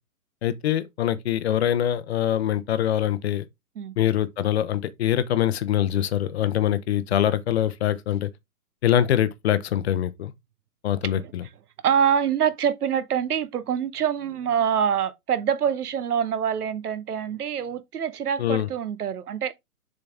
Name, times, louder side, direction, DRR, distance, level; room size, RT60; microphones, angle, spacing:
voice 1, 0.4-3.5 4.0-8.3 8.8-10.3 10.8-11.4 18.4-18.7, left 11 dB, 45° left, 0.7 m, -24 dB
voice 2, 11.8-19.5, right 8 dB, 75° right, 0.9 m, -25 dB
7.1 x 3.9 x 3.5 m
hypercardioid pair, 135°, 45 cm